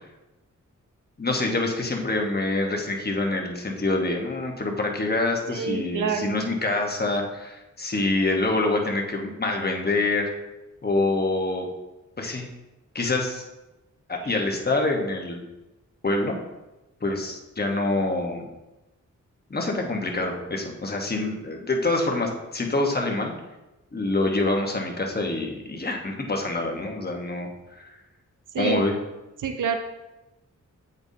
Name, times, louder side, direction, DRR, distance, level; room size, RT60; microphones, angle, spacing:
voice 1, 1.2-10.3 10.8-11.7 12.2-12.5 12.9-13.5 14.1-15.4 16.0-16.4 17.0-18.4 19.5-23.3 23.9-27.5 27.8-27.9 28.6-29.0, left 2 dB, 30° left, 1 dB, 1.2 m, -26 dB
voice 2, 5.5-6.4 14.2-14.3 28.5-28.9 29.4-29.8, right 6 dB, 85° right, 6 dB, 0.6 m, -27 dB
7.9 x 5.4 x 2.7 m, 1.0 s
cardioid pair, 70°, 31 cm